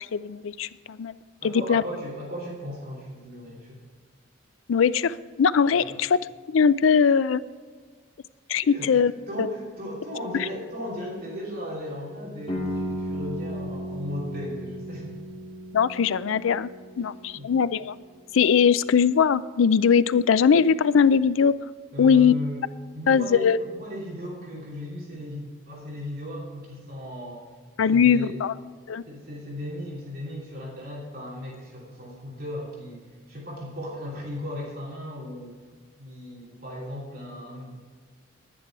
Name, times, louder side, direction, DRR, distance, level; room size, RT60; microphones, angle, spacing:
voice 1, 0.1-1.1 1.4-1.8 4.7-6.2 6.5-7.4 8.5-9.1 15.7-16.7 17.0-18.0 18.3-21.5 22.0-22.3 23.1-23.6 27.8-28.5 28.9-29.0, left 6 dB, 90° left, 16 dB, 0.4 m, -20 dB
voice 2, 1.4-3.8 5.7-5.9 8.6-15.2 17.4-17.5 21.9-22.7 22.9-27.5 27.9-28.4 29.1-35.5 36.0-37.7, left 1 dB, 50° right, -4 dB, 2.9 m, -36 dB
sound 1, 12.5-18.2, equal, 30° left, 2.4 m, -35 dB
10.5 x 10.0 x 4.8 m, 1.5 s
head